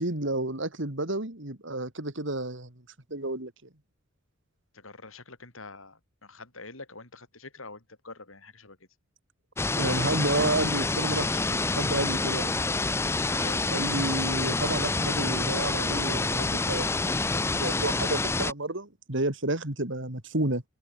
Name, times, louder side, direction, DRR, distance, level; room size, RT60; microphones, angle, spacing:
voice 1, 0.0-2.7 3.1-3.5 9.7-12.6 13.7-20.6, right 2 dB, 60° right, 2.9 m, -31 dB
voice 2, 4.7-8.8 13.2-13.8, left 3 dB, 80° left, 6.3 m, -46 dB
sound 1, 9.6-18.5, left 3 dB, 10° left, 0.4 m, -27 dB
head